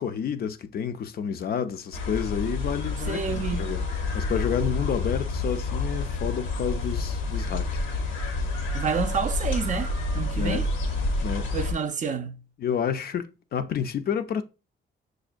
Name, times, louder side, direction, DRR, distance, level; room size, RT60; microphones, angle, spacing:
voice 1, 0.0-3.8 4.1-7.7 10.3-10.6 11.2-11.5 12.6-14.4, left 8 dB, 50° left, 0.4 m, -29 dB
sound 1, 1.9-11.7, left 2 dB, 80° left, 0.7 m, -29 dB
voice 2, 3.0-3.6 8.7-10.7 11.5-12.4, right 6 dB, 40° right, 0.4 m, -29 dB
6.1 x 2.1 x 2.5 m
cardioid pair, 90°, 20 cm